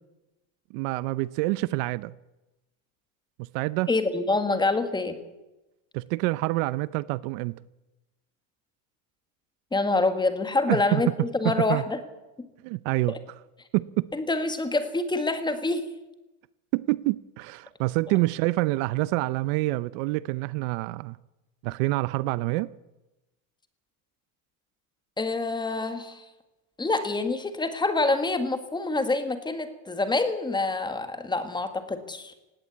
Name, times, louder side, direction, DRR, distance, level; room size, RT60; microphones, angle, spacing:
voice 1, 0.7-2.1 3.4-3.9 5.9-7.6 10.7-11.0 11.4-11.8 12.6-13.1 13.7-14.0 16.7-21.2 21.6-22.7, right 20 dB, 60° right, 0.7 m, -27 dB
voice 2, 3.9-5.2 9.7-12.0 13.1-13.2 14.1-15.9 25.2-26.2 26.8-32.3, left 3 dB, 10° left, 1.8 m, -26 dB
18.5 x 16.5 x 8.4 m
supercardioid pair, 150°, 46 cm